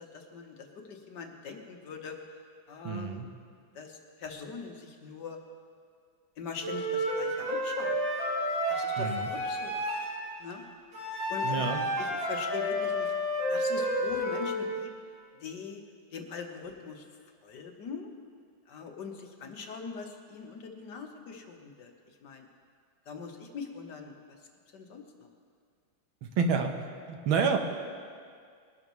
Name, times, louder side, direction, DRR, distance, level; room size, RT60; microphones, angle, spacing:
voice 1, 0.0-2.2 2.7-3.2 3.7-5.4 6.4-8.0 8.7-9.9 10.4-10.6 11.3-13.1 13.5-14.9 15.4-15.8 16.1-17.1 17.4-18.1 18.7-21.9 22.2-22.5 23.1-24.1 24.7-25.3, left 5 dB, 60° left, 3 dB, 1.6 m, -42 dB
voice 2, 2.8-3.3 9.0-9.3 11.4-11.8 26.2-26.7 27.1-27.6, right 5 dB, 85° right, 5 dB, 1.8 m, -28 dB
Wind instrument woodwind instrument, 6.6-10.1 10.9-14.7, equal, 45° right, 4.4 m, -31 dB
21.5 x 12.0 x 3.1 m, 2.1 s
omnidirectional pair, 2.2 m